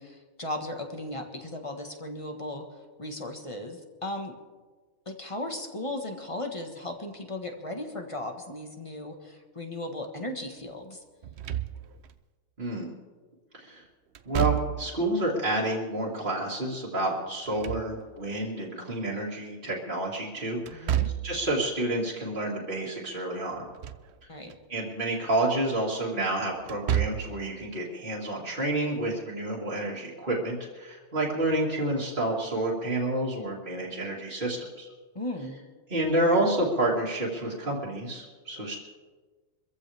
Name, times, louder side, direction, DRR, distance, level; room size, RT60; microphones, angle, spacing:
voice 1, 0.0-2.7 3.0-4.3 5.0-11.0 20.7-21.1 24.3-24.5 35.1-35.6, left 1 dB, 25° left, 3 dB, 1.6 m, -36 dB
Slam / Thump thud, 11.2-12.1 14.1-15.0 17.3-18.3 20.7-21.5 23.5-24.1 24.5-24.6 26.6-27.4, right 11 dB, 60° right, 0.9 m, -30 dB
voice 2, 12.6-12.9 13.5-13.8 14.2-20.9 21.2-23.6 24.7-34.9 35.9-38.8, right 1 dB, 40° right, -6 dB, 2.5 m, -29 dB
24.5 x 15.0 x 3.5 m, 1.4 s
omnidirectional pair, 1.4 m